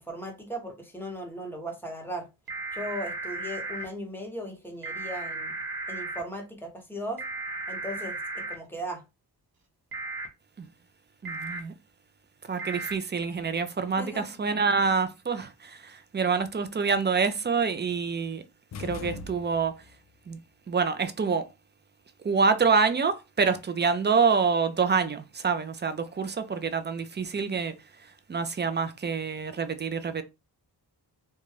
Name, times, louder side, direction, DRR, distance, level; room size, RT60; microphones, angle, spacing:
voice 1, 0.0-2.3 2.7-5.6 5.9-7.2 7.7-9.0 14.0-14.2, equal, 5° left, 0.9 m, -37 dB
sound 1, 2.5-3.8 4.8-6.2 7.2-8.5 9.9-10.3 11.2-11.6 12.6-12.9, right 2 dB, 60° right, 0.9 m, -35 dB
voice 2, 11.2-11.7 12.5-18.4 18.8-19.7 20.3-20.4 20.7-21.5 22.2-27.7 28.3-30.2, right 5 dB, 25° right, 0.4 m, -26 dB
sound 2, 18.7-19.9, left 4 dB, 40° left, 0.4 m, -40 dB
2.6 x 2.2 x 3.1 m
wide cardioid pair, 80°, 41 cm